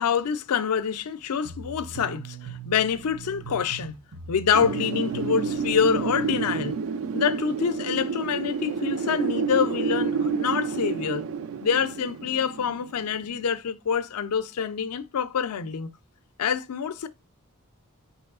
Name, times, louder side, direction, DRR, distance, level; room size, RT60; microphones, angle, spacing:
voice 1, 0.0-4.0 4.3-6.7 7.1-11.2 11.6-15.9 16.4-17.1, left 7 dB, 80° left, 0.4 m, -26 dB
sound 1, 1.4-6.8, right 6 dB, 90° right, 0.7 m, -41 dB
Wind, 4.5-13.3, right 5 dB, 65° right, 0.3 m, -29 dB
5.3 x 3.0 x 2.4 m
head